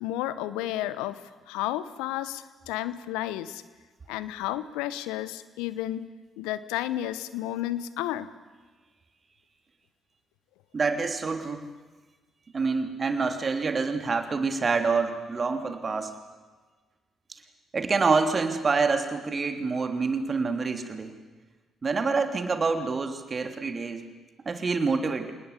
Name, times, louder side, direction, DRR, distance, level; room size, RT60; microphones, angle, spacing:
voice 1, 0.0-3.6 4.1-6.1 6.4-8.3, left 13 dB, 75° left, 15 dB, 1.0 m, -32 dB
voice 2, 10.7-11.7 12.5-16.1 17.7-21.1 21.8-24.0 24.4-25.3, right 4 dB, 40° right, 6 dB, 3.1 m, -27 dB
27.5 x 19.5 x 8.4 m, 1.4 s
hypercardioid pair, 45°, 0 cm